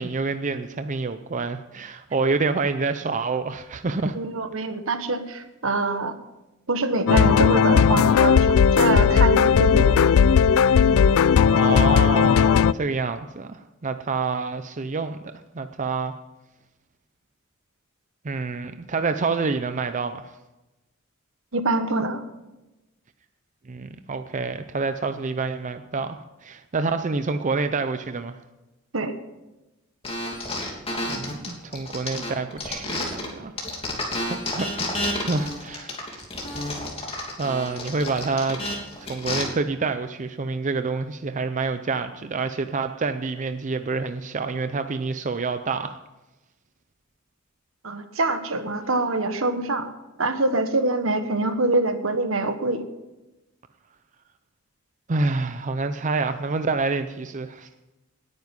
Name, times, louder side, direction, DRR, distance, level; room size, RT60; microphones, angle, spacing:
voice 1, 0.0-4.2 4.6-4.7 11.4-16.1 18.2-20.3 23.7-28.4 31.1-33.5 34.2-36.2 37.4-38.6 39.0-46.0 55.1-57.7, right 4 dB, 40° right, 9 dB, 0.6 m, -27 dB
voice 2, 4.1-6.2 6.7-10.0 21.5-22.2 28.9-29.2 47.8-49.9 50.2-52.8, right 2 dB, 75° right, 9 dB, 1.4 m, -25 dB
sound 1, 7.1-12.7, left 7 dB, 80° left, 0.4 m, -17 dB
sound 2, 30.0-33.3 33.6-39.4, left 1 dB, 30° left, 3.0 m, -30 dB
19.0 x 9.5 x 5.4 m, 1.0 s
head